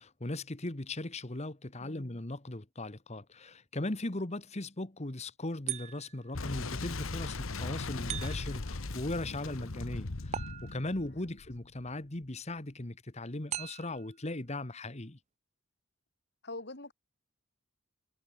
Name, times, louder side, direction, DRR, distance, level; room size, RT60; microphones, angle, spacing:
voice 1, 0.0-15.2, left 2 dB, 30° left, 1.4 m, -38 dB
voice 2, 1.8-2.2 11.2-11.3 16.4-16.9, left 2 dB, 55° left, 3.6 m, -44 dB
sound 1, 5.7-6.3 8.1-8.7 10.3-11.1 13.5-14.1, right 11 dB, 30° right, 0.3 m, -40 dB
Boom, 6.3-11.9, left 3 dB, 75° left, 1.3 m, -38 dB
head